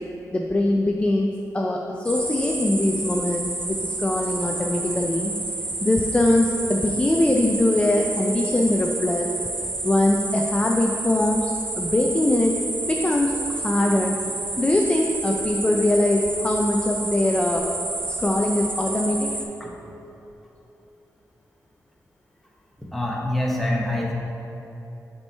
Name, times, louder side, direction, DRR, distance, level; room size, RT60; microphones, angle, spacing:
voice 1, 0.3-5.3 5.8-9.3 9.8-12.6 12.9-14.1 14.6-17.7 18.2-19.3, left 1 dB, 20° left, 0 dB, 0.4 m, -22 dB
sound 1, 2.1-19.4, right 2 dB, 30° right, 0.7 m, -30 dB
voice 2, 22.8-24.1, left 1 dB, ahead, -3 dB, 1.1 m, -25 dB
7.5 x 4.5 x 4.4 m, 3.0 s
wide cardioid pair, 105°, 6 cm